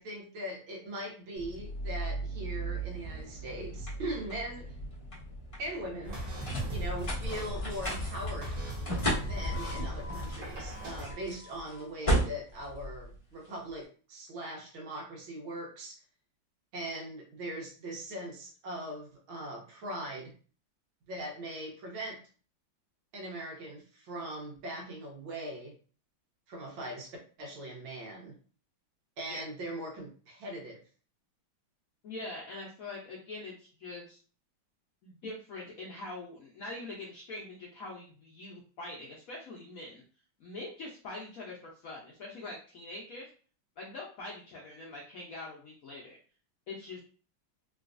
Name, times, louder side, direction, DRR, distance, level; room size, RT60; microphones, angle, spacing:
voice 1, 0.0-4.8 5.6-6.2 6.7-8.6 9.3-16.0 16.7-20.3 21.1-22.2 23.1-25.8 26.5-27.1 27.4-28.4 29.2-30.8, right 1 dB, 80° right, 0 dB, 1.8 m, -40 dB
sound 1, 1.4-13.7, right 1 dB, 45° left, 0.4 m, -36 dB
sound 2, 6.0-11.0, equal, 45° right, 0.7 m, -37 dB
voice 2, 32.0-34.2 35.0-40.0 40.4-43.3 43.8-46.2 46.7-47.0, left 2 dB, 70° left, -3 dB, 0.8 m, -43 dB
3.8 x 2.3 x 2.5 m, 0.39 s
omnidirectional pair, 2.2 m